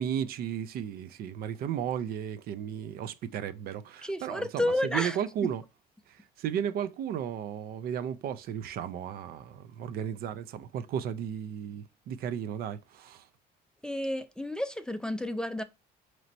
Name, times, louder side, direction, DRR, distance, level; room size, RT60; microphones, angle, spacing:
voice 1, 0.0-5.6 6.4-13.2, right 9 dB, 65° right, 0.4 m, -34 dB
voice 2, 4.0-5.5 13.8-15.6, left 1 dB, 5° left, 0.3 m, -31 dB
4.2 x 3.0 x 2.6 m
cardioid pair, 110°, 17 cm